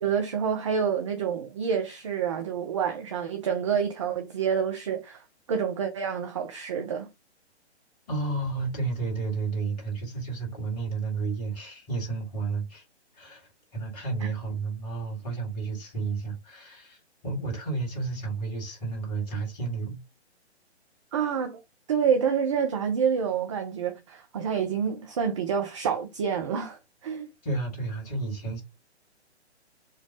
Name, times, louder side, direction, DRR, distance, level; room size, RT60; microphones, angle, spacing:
voice 1, 0.0-7.1 14.2-14.3 21.1-21.6 21.9-27.3, right 7 dB, 25° right, 0.5 m, -28 dB
voice 2, 8.1-12.8 13.2-17.0 17.2-20.0 27.4-28.6, right 4 dB, 35° left, 2.0 m, -31 dB
4.4 x 2.3 x 4.7 m
figure-of-eight pair, 130°, 34 cm